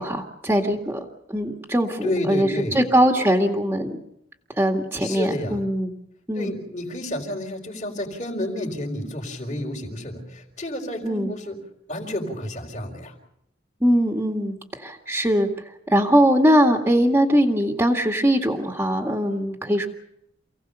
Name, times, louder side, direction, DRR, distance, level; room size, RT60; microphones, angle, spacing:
voice 1, 0.0-4.0 4.6-5.9 6.3-6.5 11.0-11.3 13.8-15.5 15.9-19.9, equal, 10° right, 2 dB, 2.0 m, -21 dB
voice 2, 2.0-2.8 5.0-5.6 6.3-11.6 11.9-13.2, left 1 dB, 40° left, -5 dB, 4.3 m, -30 dB
28.5 x 17.5 x 6.9 m, 0.78 s
head